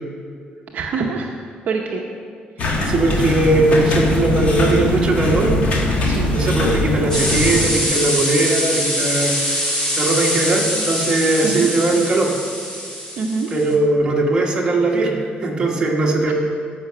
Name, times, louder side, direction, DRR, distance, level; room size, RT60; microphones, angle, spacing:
voice 1, 0.7-1.3 1.7-2.0 2.6-2.9 6.1-6.3 11.4-11.7 13.2-13.5 16.3-16.4, right 4 dB, 50° right, 0 dB, 0.8 m, -25 dB
sound 1, 2.6-7.7, left 1 dB, 45° left, 1.4 m, -21 dB
voice 2, 2.8-5.5 6.3-9.7 10.0-12.3 13.5-16.3, right 2 dB, 20° right, -2 dB, 1.4 m, -19 dB
sound 2, 7.1-13.7, equal, 20° left, 2.1 m, -23 dB
14.0 x 5.8 x 5.7 m, 2.2 s
cardioid pair, 180°, 3 cm